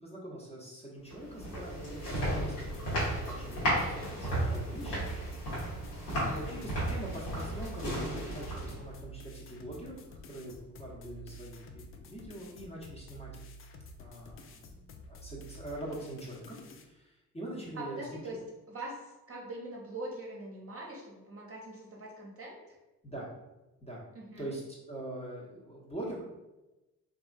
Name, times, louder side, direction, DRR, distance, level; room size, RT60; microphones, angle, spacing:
voice 1, 0.0-2.8 3.2-5.1 6.2-13.3 14.0-18.0 23.0-23.3 23.8-24.0 24.4-26.2, right 1 dB, 15° left, -4 dB, 0.9 m, -43 dB
sound 1, 1.1-8.9, right 1 dB, 80° left, 1.2 m, -34 dB
sound 2, 2.7-16.8, equal, 30° left, 0.4 m, -50 dB
voice 2, 6.1-6.5 17.7-18.4 18.7-22.8 24.1-24.5, right 2 dB, 30° right, -2 dB, 0.9 m, -43 dB
3.4 x 2.6 x 2.4 m, 1.0 s
figure-of-eight pair, 45°, 45 cm